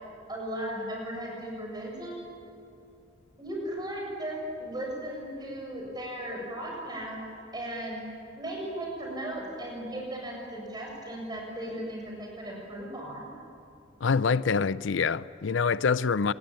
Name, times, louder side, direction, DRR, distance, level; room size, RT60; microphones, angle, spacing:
voice 1, 0.3-2.3 3.4-7.2 7.5-8.1 8.4-13.3, right 1 dB, 20° right, 7.3 m, -36 dB
voice 2, 14.0-16.3, left 5 dB, 85° left, 0.5 m, -25 dB
27.0 x 21.0 x 9.1 m
head